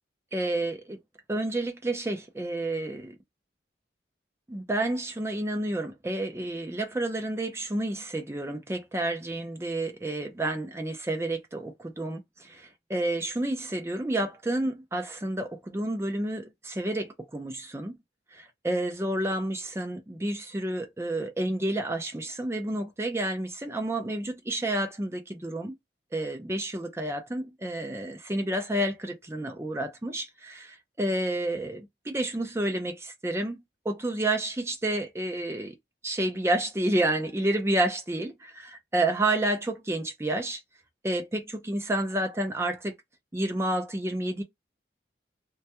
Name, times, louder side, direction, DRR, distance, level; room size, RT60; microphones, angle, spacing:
voice 1, 0.3-1.0 1.3-3.2 4.5-18.0 18.3-25.7 26.1-35.8 36.0-40.6 41.0-42.9 43.3-44.4, right 1 dB, 15° right, 0.5 m, -30 dB
2.2 x 2.2 x 2.8 m
head